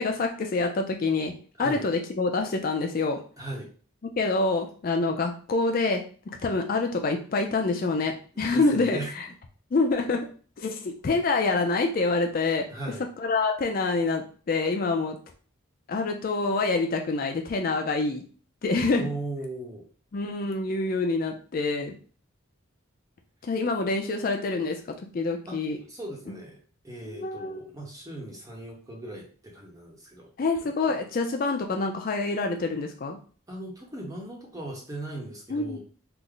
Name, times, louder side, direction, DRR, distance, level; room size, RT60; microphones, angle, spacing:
voice 1, 0.0-1.3 1.6-3.2 4.2-9.3 9.7-10.3 10.6-12.7 13.2-15.2 15.9-18.2 18.6-19.0 20.1-21.9 23.4-24.8 25.1-25.8 27.1-27.6 30.4-33.2 35.5-35.8, left 3 dB, 45° left, 4 dB, 0.4 m, -26 dB
voice 2, 3.4-3.7 7.9-8.0 8.3-9.1 12.7-13.1 19.0-19.8 25.5-25.6 25.9-26.6 26.8-30.3 33.5-35.8, right 2 dB, 15° right, -2 dB, 0.8 m, -38 dB
3.3 x 2.0 x 3.7 m, 0.41 s
head